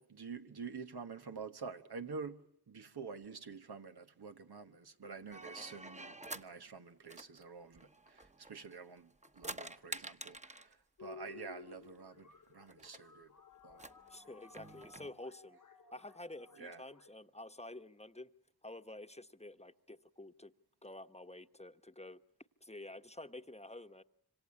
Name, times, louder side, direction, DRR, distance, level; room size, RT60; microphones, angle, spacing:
voice 1, 0.0-2.4 2.7-13.3 13.6-13.8 16.6-16.8, right 5 dB, 80° right, 1.3 m, -48 dB
sound 1, 5.3-6.5 7.1-8.8 9.1-10.7 11.9-12.0 12.2-12.3 12.7-13.0 13.7-15.1, right 2 dB, 20° right, 1.1 m, -48 dB
sound 2, 11.0-17.1, left 6 dB, 55° left, 1.3 m, -56 dB
voice 2, 14.1-15.6 15.9-18.3 18.6-20.5 20.8-22.2 22.6-24.0, left 1 dB, 15° left, 1.1 m, -50 dB
26.5 x 25.5 x 8.5 m
wide cardioid pair, 45°, 38 cm